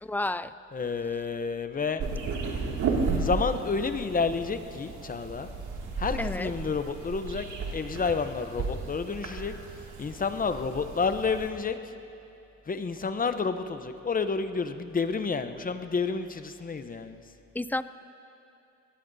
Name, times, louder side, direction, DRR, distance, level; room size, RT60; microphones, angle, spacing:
voice 1, 0.0-0.5 6.2-6.5 17.5-17.8, left 2 dB, 5° left, 14 dB, 0.3 m, -30 dB
voice 2, 0.7-2.0 3.1-5.5 6.0-9.6 10.0-11.8 12.7-17.2, left 5 dB, 30° left, 9 dB, 0.8 m, -30 dB
sound 1, 2.0-11.5, right 4 dB, 75° right, 2.3 m, -34 dB
23.5 x 18.5 x 2.7 m, 2.7 s
cardioid pair, 90°, 30 cm